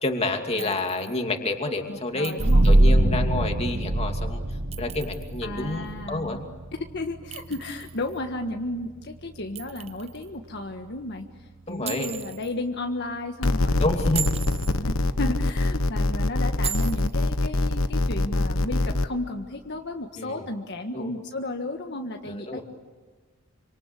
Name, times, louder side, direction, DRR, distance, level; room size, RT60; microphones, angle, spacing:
voice 1, 0.0-2.4 2.6-4.4 4.8-6.4 11.7-12.1 13.8-14.3 20.2-20.4 20.9-21.1 22.3-22.6, left 2 dB, 30° left, 4 dB, 2.6 m, -29 dB
voice 2, 0.6-1.1 1.9-3.2 5.4-6.4 6.9-11.3 11.7-14.1 14.6-22.6, left 1 dB, 55° left, 3 dB, 1.6 m, -33 dB
Chink clink, 0.6-1.2 2.2-2.9 4.5-5.4 7.3-8.2 9.6-10.3 11.9-12.5 14.0-14.8 16.6-17.3, right 9 dB, 30° right, 0.8 m, -37 dB
sound 1, 2.4-13.6, right 1 dB, 60° right, 1.4 m, -26 dB
sound 2, 13.4-19.1, left 2 dB, 90° left, 1.2 m, -24 dB
27.0 x 26.0 x 8.4 m, 1.4 s
head